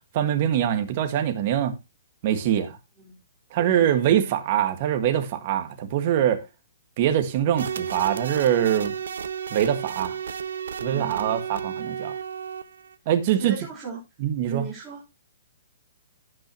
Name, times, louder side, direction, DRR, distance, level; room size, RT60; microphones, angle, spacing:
voice 1, 0.1-1.7 2.2-2.8 3.5-6.4 7.0-8.9 9.5-10.2 10.8-12.1 13.1-13.5 14.2-14.7, right 10 dB, 35° right, 1.5 m, -23 dB
voice 2, 3.6-3.9 10.9-11.4 13.3-14.0 14.5-15.0, right 6 dB, 15° right, 4.3 m, -36 dB
sound 1, 7.6-13.0, right 7 dB, 80° right, 1.0 m, -32 dB
17.0 x 5.8 x 2.9 m
hypercardioid pair, 170°, 0 cm